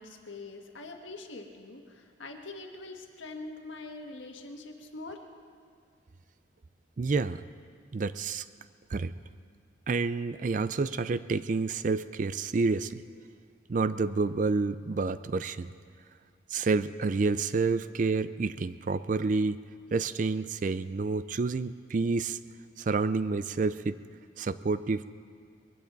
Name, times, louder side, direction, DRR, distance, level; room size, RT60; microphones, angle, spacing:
voice 1, 0.0-5.2, left 2 dB, 80° left, 3 dB, 1.5 m, -43 dB
voice 2, 7.0-7.4 7.9-8.4 8.9-9.1 9.9-13.0 13.7-15.7 16.5-19.6 19.9-22.4 22.8-24.0 24.4-25.0, right 4 dB, 40° right, 14 dB, 0.4 m, -29 dB
21.5 x 15.5 x 4.0 m, 2.1 s
head